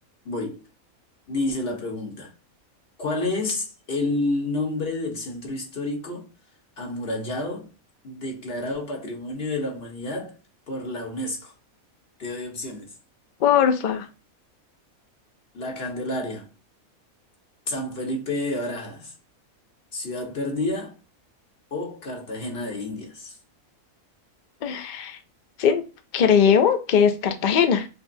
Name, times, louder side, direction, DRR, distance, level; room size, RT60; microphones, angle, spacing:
voice 1, 0.2-0.6 1.3-2.3 3.0-6.3 6.8-7.7 8.0-10.4 10.7-11.5 12.2-12.9 15.5-16.5 17.7-19.1 19.9-20.9 21.7-23.4, left 2 dB, 45° left, 1.3 m, -29 dB
voice 2, 13.4-14.1 24.6-25.2 25.6-25.8 26.1-27.9, left 7 dB, 85° left, 0.4 m, -20 dB
5.8 x 2.1 x 2.6 m
omnidirectional pair, 1.5 m